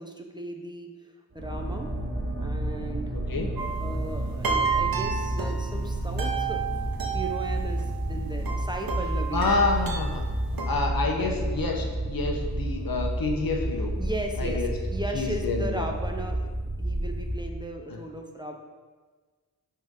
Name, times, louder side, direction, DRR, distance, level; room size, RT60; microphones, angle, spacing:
voice 1, 0.0-1.9 2.4-3.1 3.8-6.6 7.1-9.5 11.0-11.6 14.0-14.6 14.9-18.5, right 1 dB, 10° right, 3 dB, 0.9 m, -36 dB
sound 1, 1.3-17.6, right 1 dB, 35° right, 1.7 m, -31 dB
sound 2, 3.6-10.7, right 6 dB, 70° right, 1.0 m, -32 dB
voice 2, 9.3-10.2 10.7-13.9 14.4-14.7 15.1-15.9 17.9-18.0, left 3 dB, 70° left, 1 dB, 1.2 m, -28 dB
11.0 x 4.5 x 3.8 m, 1.4 s
wide cardioid pair, 75°, 36 cm